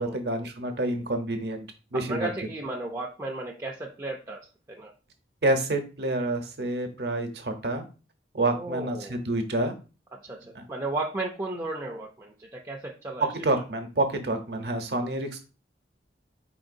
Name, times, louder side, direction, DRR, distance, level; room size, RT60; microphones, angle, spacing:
voice 1, 0.0-1.6 1.9-2.3 5.4-7.8 8.3-9.7 10.5-10.7 13.2-15.4, right 2 dB, 65° right, 6 dB, 0.8 m, -28 dB
voice 2, 1.9-4.9 8.5-9.1 10.1-13.3, right 2 dB, 20° right, 0 dB, 0.4 m, -34 dB
4.5 x 3.8 x 2.6 m, 0.33 s
head